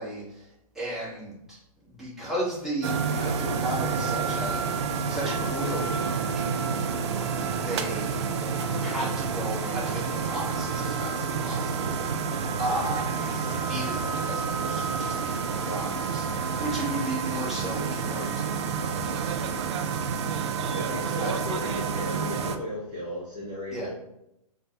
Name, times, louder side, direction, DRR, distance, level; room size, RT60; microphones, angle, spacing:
voice 1, 0.0-1.6 1.8-6.5 7.5-20.0 20.3-21.4 23.7-23.9, right 1 dB, ahead, -9 dB, 1.3 m, -35 dB
sound 1, 2.8-22.6, right 5 dB, 45° right, 0.4 m, -29 dB
voice 2, 20.7-23.9, left 1 dB, 25° right, -6 dB, 0.8 m, -35 dB
3.9 x 2.3 x 2.9 m, 0.84 s
hypercardioid pair, 140°, 19 cm